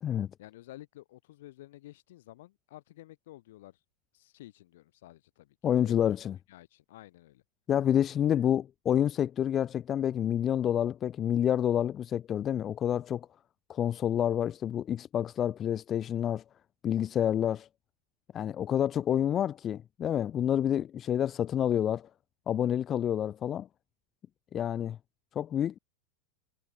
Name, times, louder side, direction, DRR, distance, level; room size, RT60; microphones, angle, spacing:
voice 1, 0.4-3.8 4.1-6.1 6.5-7.4, left 16 dB, 70° left, 7.4 m, -51 dB
voice 2, 5.6-6.3 7.7-13.3 13.7-16.4 16.8-17.7 18.3-22.1 22.5-23.7 24.5-25.0 25.3-25.8, left 10 dB, 25° left, 0.7 m, -28 dB
supercardioid pair, 145°, 0 cm